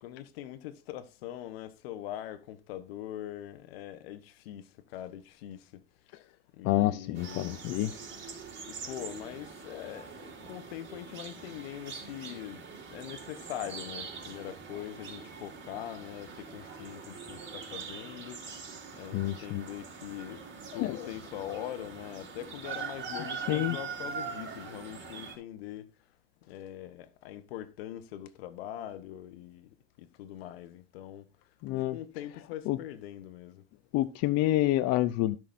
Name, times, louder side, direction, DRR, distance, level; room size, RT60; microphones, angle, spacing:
voice 1, 0.0-5.8 6.5-7.7 8.7-12.6 12.9-18.6 18.9-20.4 20.7-25.9 26.4-31.3 31.7-33.6, left 12 dB, 80° left, 1.2 m, -42 dB
voice 2, 6.6-7.9 19.1-19.6 20.7-20.9 23.5-23.8 31.6-32.0 32.7-32.8 33.9-35.4, left 15 dB, 60° left, 0.7 m, -28 dB
sound 1, 7.1-25.4, right 5 dB, 40° right, 4.1 m, -43 dB
17.5 x 6.1 x 2.6 m
hypercardioid pair, 85°, 29 cm